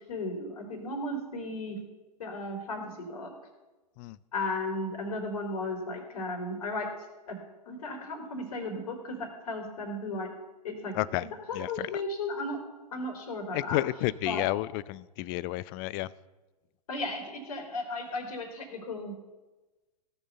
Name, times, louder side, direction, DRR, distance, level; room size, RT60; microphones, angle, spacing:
voice 1, 0.1-1.8 2.2-3.3 4.3-6.9 7.3-7.4 7.7-10.3 10.6-10.9 11.5-12.6 12.9-13.8 14.2-14.4 16.9-19.1, left 2 dB, 60° left, 3 dB, 3.8 m, -35 dB
voice 2, 10.9-11.3 11.5-11.9 13.5-16.1, left 17 dB, 30° left, 21 dB, 0.4 m, -31 dB
17.0 x 6.2 x 6.9 m, 1.2 s
figure-of-eight pair, 110°, 21 cm